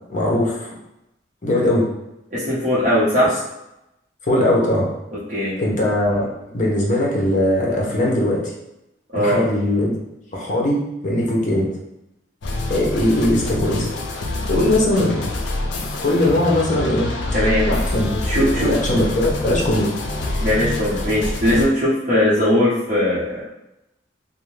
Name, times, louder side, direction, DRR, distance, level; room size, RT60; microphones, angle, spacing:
voice 1, 0.1-0.7 1.4-1.9 4.2-4.9 5.6-8.4 9.1-9.9 10.3-11.7 12.7-13.9 14.5-15.1 16.0-17.1 17.7-18.2 18.5-19.9, left 1 dB, 45° left, -2 dB, 0.7 m, -20 dB
voice 2, 2.3-3.3 5.3-5.6 9.1-9.4 15.1-15.2 17.3-17.7 18.2-18.7 20.4-23.5, left 1 dB, 45° right, -9 dB, 0.8 m, -19 dB
sound 1, 12.4-21.7, left 2 dB, 75° left, 0.4 m, -26 dB
2.5 x 2.1 x 3.1 m, 0.89 s
head